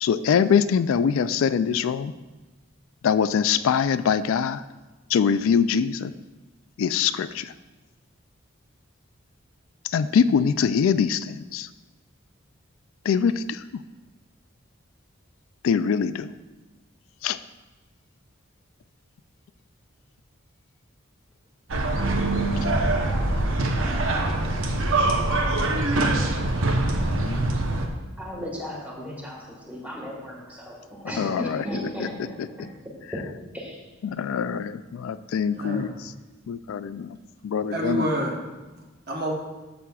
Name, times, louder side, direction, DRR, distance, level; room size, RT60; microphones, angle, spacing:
voice 1, 0.0-2.1 3.0-4.6 5.1-6.1 6.8-7.5 9.8-11.7 13.1-13.6 15.6-16.3 17.2-17.4 22.6-22.7 27.1-27.6 31.2-31.6 34.0-36.1 36.5-37.2 37.4-38.1, left 7 dB, 80° left, 13 dB, 0.3 m, -23 dB
sound 1, 21.7-27.9, right 2 dB, 75° right, 0.8 m, -23 dB
voice 2, 22.4-23.3 28.2-32.7 33.5-33.8, equal, 10° right, -3 dB, 1.5 m, -36 dB
voice 3, 35.5-35.9 37.7-38.4 38.7-39.3, right 1 dB, 50° right, 0 dB, 1.1 m, -28 dB
12.5 x 7.0 x 2.3 m, 1.2 s
head